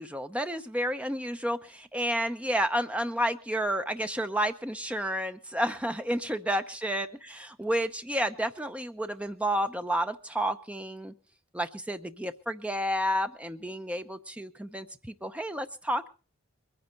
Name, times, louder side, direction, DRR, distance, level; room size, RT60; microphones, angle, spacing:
voice 1, 0.0-7.1 7.6-11.1 11.5-16.1, equal, 5° right, 9 dB, 0.6 m, -30 dB
22.0 x 9.7 x 5.2 m, 0.36 s
head